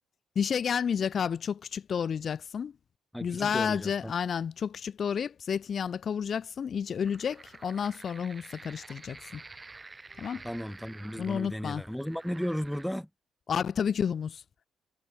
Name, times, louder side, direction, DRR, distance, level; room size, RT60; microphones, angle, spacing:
voice 1, 0.4-2.7 3.2-9.4 10.2-10.4 11.2-11.8 13.5-14.4, left 7 dB, 45° left, 0.6 m, -31 dB
voice 2, 3.1-4.1 10.4-13.1, equal, ahead, 0.7 m, -35 dB
sound 1, 7.0-12.8, right 3 dB, 20° right, 2.4 m, -49 dB
cardioid pair, 120°, 0 cm